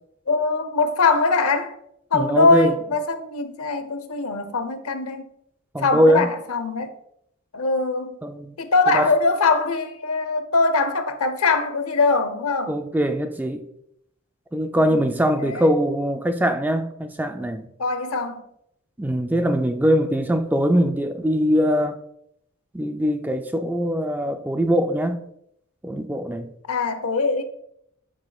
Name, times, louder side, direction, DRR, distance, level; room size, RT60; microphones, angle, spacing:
voice 1, 0.3-1.7 2.1-5.3 5.8-6.9 7.5-8.2 8.6-12.7 14.9-15.7 17.8-18.4 26.7-27.4, left 3 dB, 90° left, 0.7 m, -22 dB
voice 2, 2.1-2.7 5.7-6.3 8.2-8.5 8.9-9.1 12.7-13.6 14.5-17.7 19.0-22.0 22.7-25.2 25.8-26.5, equal, 10° right, 0.3 m, -22 dB
9.3 x 5.0 x 2.3 m
head